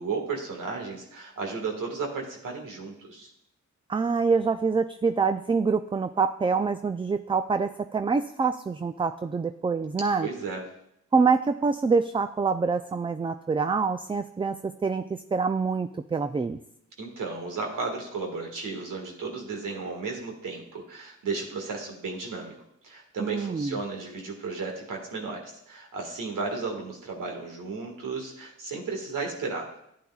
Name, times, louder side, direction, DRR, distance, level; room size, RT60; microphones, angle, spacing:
voice 1, 0.0-3.3 10.2-10.6 17.0-22.5 22.8-29.7, right 4 dB, 85° right, 1 dB, 1.8 m, -34 dB
voice 2, 3.9-10.3 11.1-16.6 23.2-23.8, right 5 dB, 15° right, 9 dB, 0.3 m, -26 dB
12.0 x 8.4 x 2.4 m, 0.76 s
cardioid pair, 55°, 31 cm